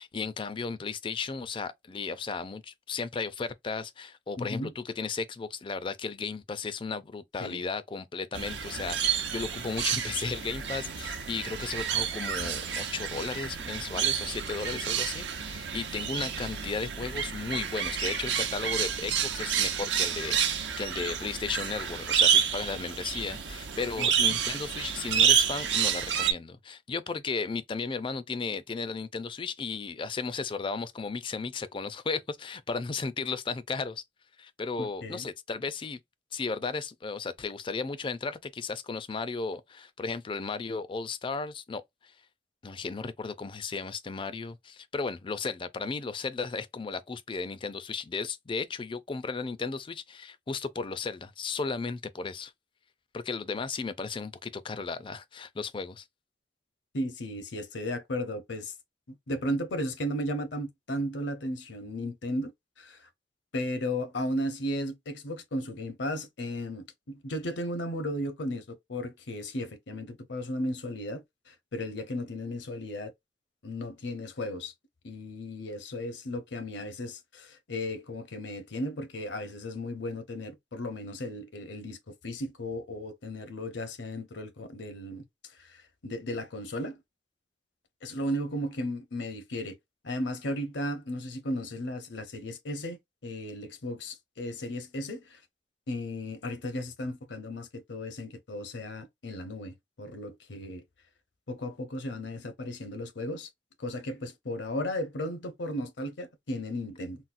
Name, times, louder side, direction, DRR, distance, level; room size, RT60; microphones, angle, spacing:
voice 1, 0.0-34.0 34.4-36.0 36.3-42.1 42.6-52.5 53.1-56.0, left 4 dB, 30° left, 0.4 m, -35 dB
voice 2, 4.4-4.7 7.4-7.6 24.0-24.4 34.8-35.3 56.9-58.7 59.1-62.5 62.8-63.1 63.5-73.1 73.6-74.7 75.0-85.2 85.6-87.0 88.0-89.8 90.0-95.4 95.9-100.8 101.5-103.5 103.8-107.2, left 1 dB, 80° left, 0.8 m, -35 dB
sound 1, 8.3-26.3, right 8 dB, 75° right, 0.8 m, -29 dB
4.0 x 2.1 x 2.5 m
head